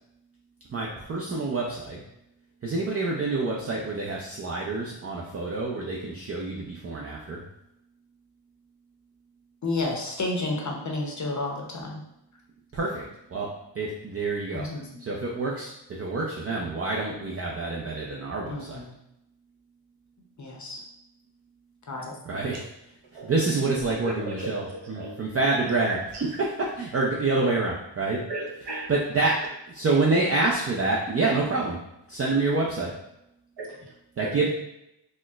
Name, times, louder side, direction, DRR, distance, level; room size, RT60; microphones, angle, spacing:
voice 1, 0.7-2.0 2.6-7.4 12.7-14.7 15.0-15.7 16.0-18.8 22.3-22.6 23.2-26.0 26.4-28.2 28.9-29.4 29.7-31.8 32.1-32.9 34.2-34.5, right 3 dB, 35° right, -3 dB, 0.4 m, -27 dB
voice 2, 9.6-12.0 14.5-14.9 18.5-18.9 20.4-20.8 21.9-22.1, left 2 dB, 40° left, 0 dB, 0.7 m, -31 dB
voice 3, 24.3-25.2 25.9-26.2 28.3-28.9 33.6-34.5, right 2 dB, 65° right, -2 dB, 0.9 m, -36 dB
4.2 x 2.0 x 2.3 m, 0.85 s
wide cardioid pair, 90°, 44 cm